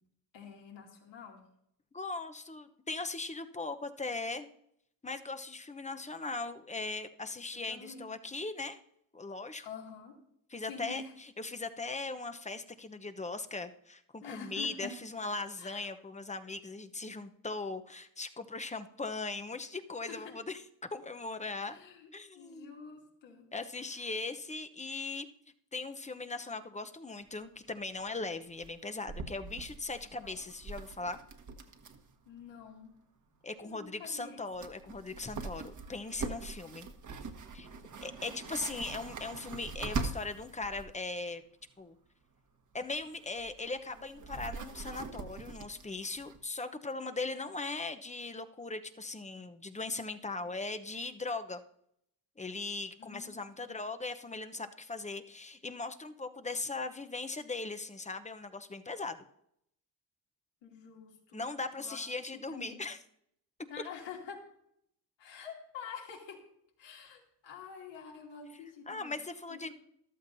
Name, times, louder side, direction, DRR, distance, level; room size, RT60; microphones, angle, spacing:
voice 1, 0.3-1.4 7.5-8.2 9.6-10.2 10.7-11.1 14.2-15.0 15.6-15.9 16.4-16.6 20.1-20.4 21.7-23.5 24.0-24.1 30.2-30.4 32.3-32.9 33.6-34.4 53.0-53.4 53.6-53.8 60.6-61.5 61.8-62.0 62.3-62.8 63.7-64.4 65.2-66.4 66.8-69.2 69.5-69.7, left 6 dB, 70° left, 0 dB, 2.8 m, -47 dB
voice 2, 1.9-4.5 5.0-8.8 9.1-9.7 10.5-11.0 11.4-20.6 20.9-21.8 22.1-22.7 23.5-25.3 25.7-31.2 33.4-36.9 37.5-37.7 38.0-41.4 41.8-42.0 42.7-51.6 52.4-59.2 61.3-63.0 68.9-69.7, left 3 dB, 15° left, 9 dB, 0.8 m, -39 dB
sound 1, 27.3-27.4 27.6-27.7 28.0-28.2 28.6-32.1 32.4-32.5 34.2-34.3 34.5-40.9 42.7-46.4, right 4 dB, 40° right, 1.4 m, -42 dB
14.0 x 12.0 x 2.7 m, 0.74 s
supercardioid pair, 70°, 45 cm